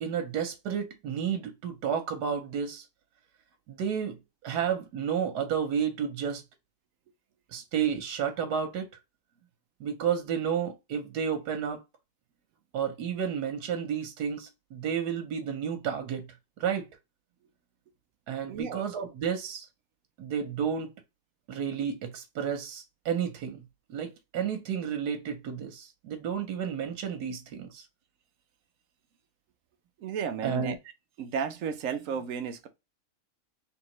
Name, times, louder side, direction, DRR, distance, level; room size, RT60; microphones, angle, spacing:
voice 1, 0.0-2.8 3.7-6.4 7.5-8.9 9.8-11.8 12.7-16.3 16.6-16.9 18.3-19.7 20.2-20.9 21.5-23.6 23.9-27.8 30.4-30.8, right 7 dB, 85° right, 1.3 m, -31 dB
voice 2, 18.5-18.9 30.0-30.8 31.2-32.7, right 6 dB, 65° right, 0.9 m, -33 dB
3.6 x 3.4 x 3.0 m
omnidirectional pair, 1.7 m